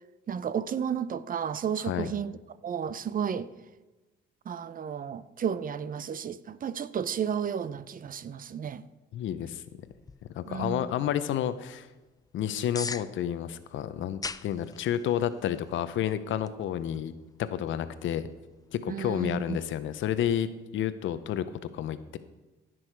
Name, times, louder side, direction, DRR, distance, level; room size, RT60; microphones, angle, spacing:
voice 1, 0.3-2.4 2.6-3.5 4.5-8.8 10.5-10.9 18.9-19.6, right 7 dB, 45° right, 0.6 m, -32 dB
voice 2, 9.1-9.6 10.3-11.9 12.3-17.1 17.5-18.2 18.7-20.5 20.7-21.4 21.7-22.2, left 10 dB, 75° left, 0.7 m, -30 dB
sound 1, 9.8-20.4, left 4 dB, 20° left, 0.4 m, -46 dB
16.0 x 6.3 x 4.6 m
cardioid pair, 90°, 20 cm